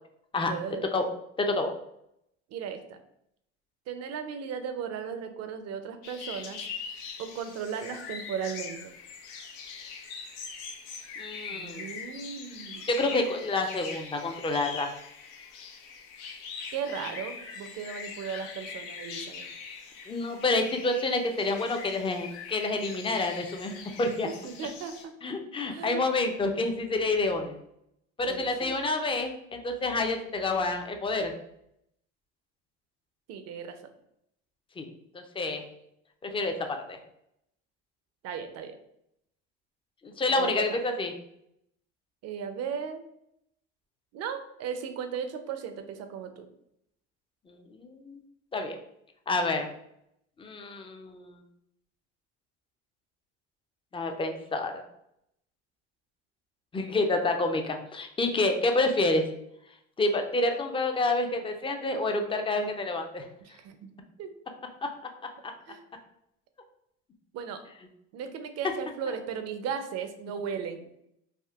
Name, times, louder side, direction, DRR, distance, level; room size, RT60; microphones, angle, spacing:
voice 1, 0.5-0.9 2.5-3.0 3.9-6.7 7.2-8.9 11.5-12.9 16.7-19.5 24.2-25.1 25.7-26.3 28.2-28.7 33.3-33.8 38.2-38.8 40.3-40.8 42.2-43.0 44.1-46.5 63.4-63.9 64.2-64.3 65.7-65.8 67.3-67.6 68.1-70.9, right 7 dB, 50° right, 8 dB, 0.5 m, -36 dB
voice 2, 1.4-1.7 11.2-11.9 12.9-14.9 20.1-23.7 24.0-24.3 25.2-27.6 28.2-31.3 34.8-34.9 35.1-35.6 36.2-37.0 40.0-41.1 47.5-48.2 48.5-48.8 49.3-49.7 50.4-51.4 53.9-54.8 56.7-59.2 60.0-63.3 64.8-64.9, left 2 dB, 15° left, 5 dB, 0.5 m, -28 dB
sound 1, 6.0-25.0, left 5 dB, 75° left, 0.7 m, -42 dB
3.5 x 2.4 x 2.3 m, 0.78 s
hypercardioid pair, 75°, 33 cm